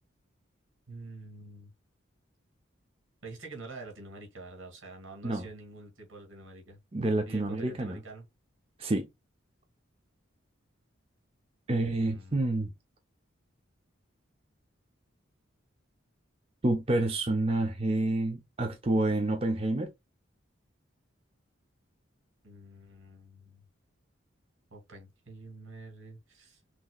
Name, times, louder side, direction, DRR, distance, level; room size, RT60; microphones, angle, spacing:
voice 1, 0.9-1.7 3.2-6.8 7.3-8.3 11.7-12.4 22.4-23.6 24.7-26.6, right 3 dB, 85° right, 2.4 m, -47 dB
voice 2, 6.9-8.0 8.8-9.1 11.7-12.7 16.6-19.9, right 2 dB, 30° right, 0.6 m, -28 dB
6.0 x 3.0 x 2.3 m
head